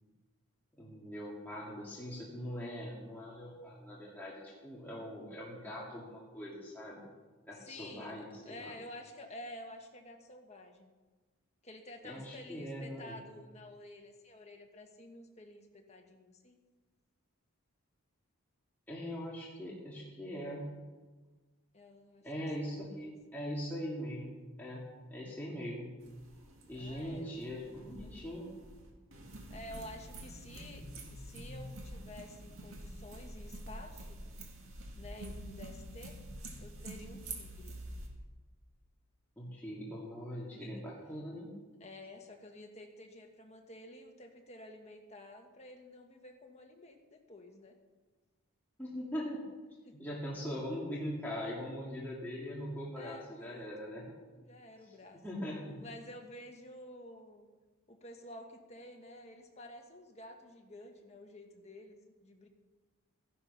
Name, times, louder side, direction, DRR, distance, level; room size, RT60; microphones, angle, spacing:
voice 1, 0.8-7.0 7.5-8.7 12.0-13.2 18.9-20.7 22.2-26.0 26.7-28.5 39.4-41.5 48.8-49.4 49.9-54.1 55.1-55.8, equal, 10° left, -6 dB, 2.1 m, -41 dB
voice 2, 7.5-10.9 11.6-16.6 21.7-23.1 26.7-28.2 29.5-34.2 34.9-36.2 36.6-37.8 40.6-40.7 41.8-47.8 49.8-49.9 53.0-53.7 54.3-55.2 55.8-57.5 57.9-62.5, left 1 dB, 30° left, 3 dB, 1.6 m, -51 dB
sound 1, 26.0-38.1, right 1 dB, 65° right, 2.3 m, -47 dB
14.5 x 11.0 x 5.5 m, 1.3 s
head